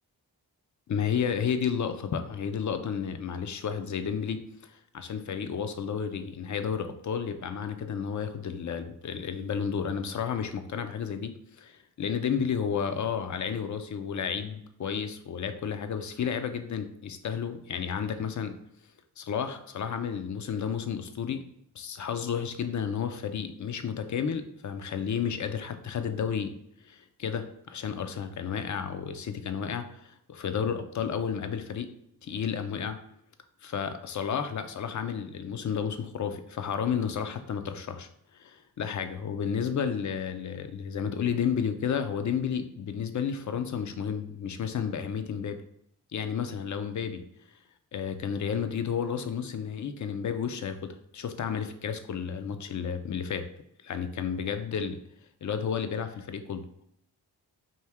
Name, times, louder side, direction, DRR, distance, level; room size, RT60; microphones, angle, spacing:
voice 1, 0.9-18.6 19.2-21.4 21.7-26.5 26.8-31.9 32.2-33.0 33.6-38.1 38.3-45.6 46.1-47.2 47.9-53.5 53.8-55.0 55.4-56.8, left 7 dB, 45° left, 8 dB, 0.6 m, -32 dB
4.4 x 2.7 x 3.5 m, 0.69 s
cardioid pair, 65°, 40 cm